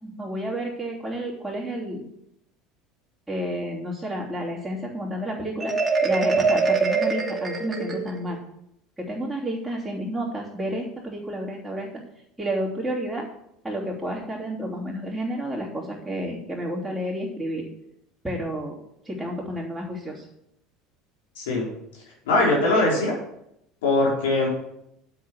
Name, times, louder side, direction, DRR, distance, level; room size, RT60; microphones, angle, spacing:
voice 1, 0.0-2.0 3.3-5.7 6.0-8.4 9.0-11.9 12.4-13.3 13.6-17.6 18.2-18.8 19.0-20.2, equal, 5° right, -9 dB, 3.3 m, -30 dB
Marimba xylophone, 5.6-8.4, right 4 dB, 25° right, 2.6 m, -23 dB
voice 2, 21.4-21.7 22.3-23.1 23.8-24.5, left 2 dB, 85° left, -3 dB, 4.5 m, -21 dB
8.7 x 8.6 x 6.4 m, 0.79 s
hypercardioid pair, 85°, 0 cm